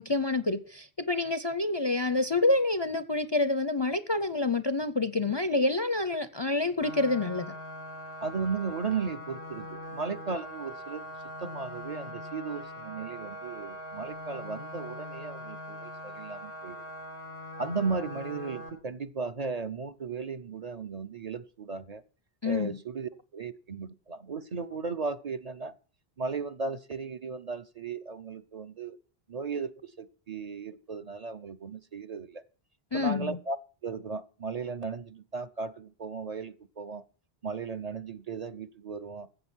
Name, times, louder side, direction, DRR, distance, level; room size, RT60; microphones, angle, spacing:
voice 1, 0.0-7.5 22.4-22.8 32.9-33.4, left 2 dB, 35° left, 0.5 m, -27 dB
sound 1, 6.8-18.7, equal, 70° right, 4.8 m, -42 dB
voice 2, 8.2-11.0 11.4-16.8 17.6-22.0 22.4-25.7 26.2-29.0 29.3-32.4 32.9-33.6 33.8-37.0 37.4-39.3, right 4 dB, 45° right, 0.7 m, -36 dB
14.5 x 7.8 x 6.1 m
omnidirectional pair, 1.0 m